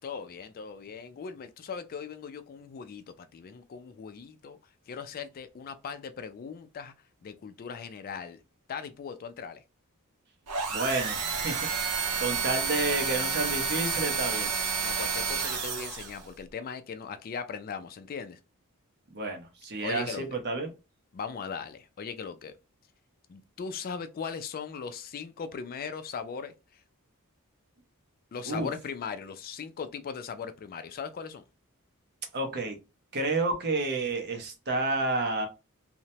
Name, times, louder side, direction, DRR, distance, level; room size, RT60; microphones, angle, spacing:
voice 1, 0.0-4.6 4.9-6.9 7.2-8.4 8.7-9.6 14.8-18.4 19.8-20.2 21.1-22.5 23.3-26.5 28.3-31.4, left 6 dB, 40° left, 0.3 m, -39 dB
sound 1, 10.5-16.3, right 5 dB, 90° right, 0.6 m, -30 dB
voice 2, 10.7-14.5 19.1-20.7 28.5-28.7 32.3-32.8 33.1-35.5, right 2 dB, 50° right, 0.7 m, -30 dB
2.8 x 2.1 x 2.7 m
head